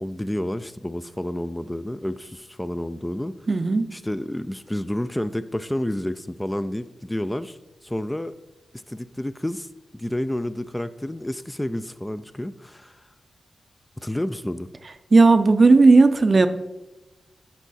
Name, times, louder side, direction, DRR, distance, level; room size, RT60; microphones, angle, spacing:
voice 1, 0.0-3.5 3.9-8.3 8.7-13.1 14.0-14.7, left 1 dB, 10° left, 12 dB, 0.3 m, -30 dB
voice 2, 3.5-3.9 15.1-16.5, right 3 dB, 45° right, 10 dB, 0.5 m, -14 dB
8.3 x 4.5 x 4.2 m, 1.0 s
cardioid pair, 65°, 0 cm